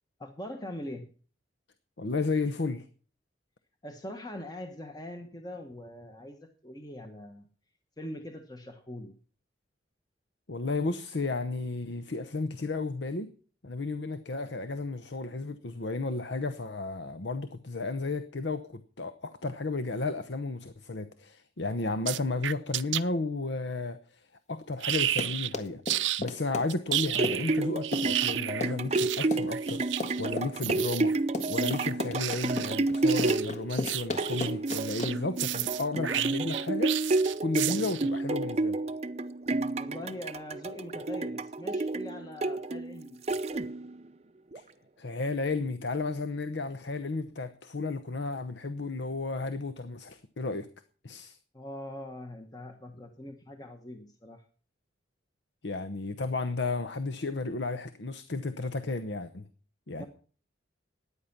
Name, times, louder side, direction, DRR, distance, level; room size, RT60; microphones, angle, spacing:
voice 1, 0.2-1.1 3.8-7.5 8.0-9.1 39.8-43.6 51.5-54.4 59.9-60.1, left 1 dB, 20° left, 1.1 m, -42 dB
voice 2, 2.0-2.9 10.5-13.3 13.6-29.8 30.2-31.2 31.5-37.0 37.4-38.8 44.5-44.6 45.0-50.7 51.0-51.4 55.6-59.5 59.9-60.1, left 3 dB, 70° left, 0.9 m, -33 dB
sound 1, 22.1-23.0 24.8-25.5 25.9-26.2 26.7-38.2, right 13 dB, 85° right, 0.6 m, -32 dB
Run, 24.9-35.4, left 2 dB, 40° left, 1.6 m, -36 dB
sound 2, 26.9-44.0 44.5-44.6, right 2 dB, 35° right, 0.6 m, -30 dB
14.0 x 9.8 x 5.9 m
head